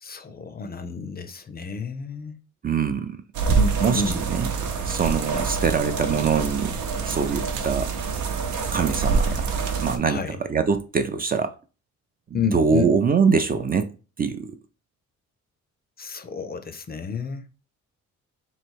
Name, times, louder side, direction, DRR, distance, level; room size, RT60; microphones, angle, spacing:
voice 1, 0.0-2.4 3.5-4.2 10.1-10.4 12.3-12.9 16.0-17.4, left 4 dB, 30° left, 0.5 m, -30 dB
voice 2, 2.6-3.2 3.8-4.0 4.3-4.5 4.8-6.7 7.0-7.9 8.7-9.4 9.7-11.5 12.3-13.9 14.2-14.6, right 5 dB, 30° right, 0.5 m, -23 dB
sound 1, 3.3-10.0, right 5 dB, 75° right, 0.8 m, -26 dB
3.2 x 2.9 x 4.5 m
cardioid pair, 90°, 30 cm